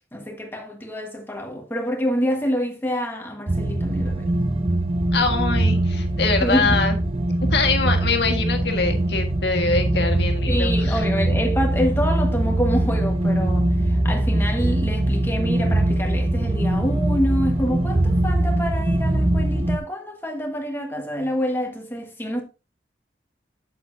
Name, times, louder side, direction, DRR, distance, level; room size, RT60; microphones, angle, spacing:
voice 1, 0.1-4.3 6.4-6.8 10.5-22.4, equal, 10° left, 1.4 m, -27 dB
sound 1, 3.5-19.8, right 1 dB, 30° right, 0.6 m, -22 dB
voice 2, 5.1-6.9 7.5-11.0, left 4 dB, 70° left, 1.5 m, -24 dB
8.6 x 7.5 x 2.6 m
head